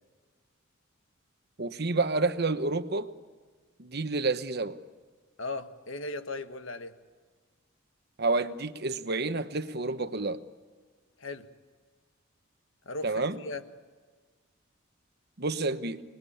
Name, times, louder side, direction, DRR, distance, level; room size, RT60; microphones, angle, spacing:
voice 1, 1.6-3.1 3.8-4.8 8.2-10.4 13.0-13.4 15.4-16.0, right 3 dB, 55° right, 1.1 m, -29 dB
voice 2, 5.4-7.0 11.2-11.5 12.8-13.6, left 2 dB, 75° left, 1.5 m, -37 dB
27.0 x 20.5 x 8.7 m
head